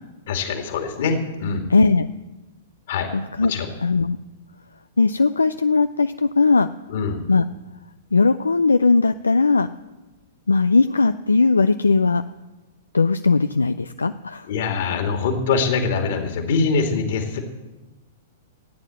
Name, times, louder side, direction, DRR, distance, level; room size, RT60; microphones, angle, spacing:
voice 1, 0.3-1.7 2.9-3.1 3.5-3.7 6.9-7.2 14.5-17.4, left 5 dB, 55° left, 5 dB, 2.3 m, -23 dB
voice 2, 1.7-2.1 3.1-3.5 3.8-4.2 5.0-6.7 7.3-7.4 8.1-9.7 10.5-12.2 12.9-14.5, left 4 dB, 80° left, 11 dB, 0.4 m, -18 dB
14.0 x 9.2 x 7.6 m, 1.1 s
figure-of-eight pair, 105°, 0 cm